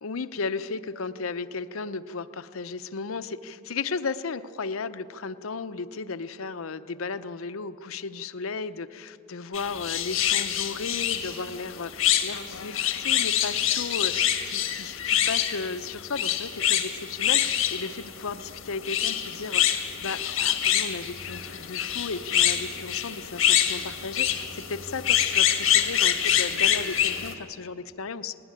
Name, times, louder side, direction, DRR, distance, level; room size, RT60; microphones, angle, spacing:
voice 1, 0.0-28.4, left 4 dB, 85° left, 12 dB, 0.7 m, -35 dB
sound 1, 9.5-27.3, left 10 dB, 65° left, 1.8 m, -26 dB
19.0 x 18.5 x 9.9 m, 2.8 s
head